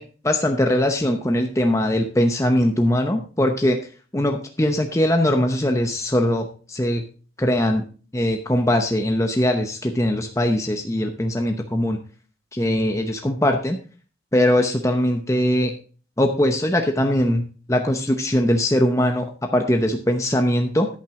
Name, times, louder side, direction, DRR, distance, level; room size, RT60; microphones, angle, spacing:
voice 1, 0.0-3.8 4.1-7.0 7.4-7.9 8.1-12.0 12.5-13.8 14.3-15.8 16.2-20.9, left 1 dB, 15° left, 4 dB, 0.8 m, -21 dB
10.5 x 9.0 x 3.7 m, 0.38 s
head